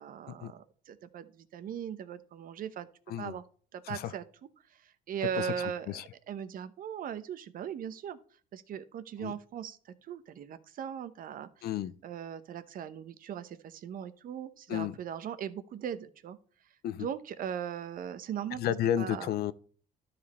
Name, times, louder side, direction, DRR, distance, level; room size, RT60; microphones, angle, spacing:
voice 1, 0.0-2.9 3.2-3.4 3.7-4.2 4.7-6.0 6.3-8.2 8.5-11.7 12.0-16.4 16.9-18.6 19.0-19.3, right 8 dB, 55° right, 0.9 m, -39 dB
voice 2, 11.6-11.9 14.7-14.9 16.8-17.1 18.6-19.5, left 11 dB, 70° left, 0.6 m, -31 dB
12.5 x 5.1 x 4.2 m
cardioid pair, 110°, 17 cm